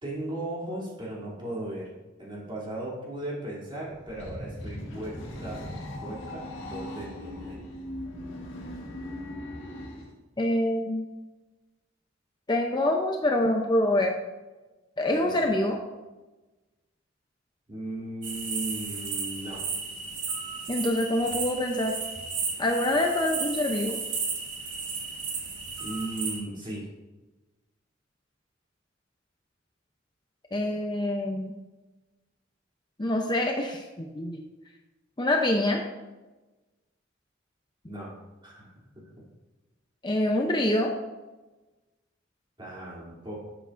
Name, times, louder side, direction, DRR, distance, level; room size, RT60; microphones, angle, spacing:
voice 1, 0.0-1.9 2.2-5.6 6.0-7.6 15.1-15.6 17.7-19.6 25.8-26.9 37.8-38.1 38.4-39.1 42.6-43.3, right 1 dB, 25° right, -6 dB, 3.0 m, -37 dB
sound 1, 3.9-10.1, left 1 dB, 80° left, 1.8 m, -39 dB
voice 2, 10.4-11.1 12.5-14.1 15.0-15.8 20.7-22.0 22.6-24.0 30.5-31.5 33.0-34.4 35.2-35.8 40.0-40.9, left 1 dB, 25° left, 2 dB, 0.6 m, -25 dB
sound 2, 18.2-26.4, right 5 dB, 65° right, 2.0 m, -34 dB
11.5 x 7.8 x 2.6 m, 1.1 s
head